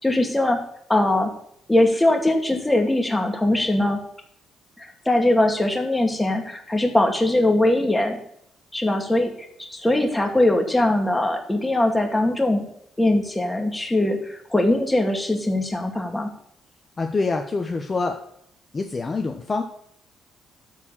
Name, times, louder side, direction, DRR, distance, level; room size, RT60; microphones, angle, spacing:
voice 1, 0.0-0.6 0.9-1.3 1.7-4.0 4.8-8.2 8.7-9.3 9.6-12.7 13.0-16.3, left 1 dB, 10° left, 3 dB, 2.3 m, -21 dB
voice 2, 17.0-18.2 18.7-19.6, left 3 dB, 35° left, 4 dB, 1.1 m, -25 dB
13.0 x 4.7 x 7.5 m, 0.71 s
cardioid pair, 90°, 0 cm